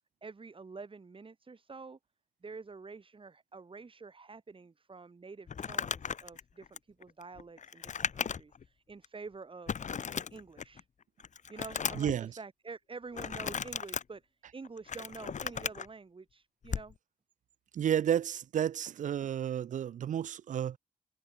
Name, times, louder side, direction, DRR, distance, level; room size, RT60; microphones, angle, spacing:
voice 1, 0.2-2.0 2.4-9.8 10.3-10.9 11.5-17.0, right 4 dB, 35° right, 6.4 m, -48 dB
Crumpling crinkling, 5.5-8.6 9.0-9.1 9.7-10.8 11.2-12.2 13.1-14.0 14.6-15.9 16.6-16.9, left 7 dB, 55° left, 2.2 m, -36 dB
voice 2, 12.0-12.3 17.7-20.8, right 10 dB, 55° right, 0.5 m, -31 dB
cardioid pair, 75°, 15 cm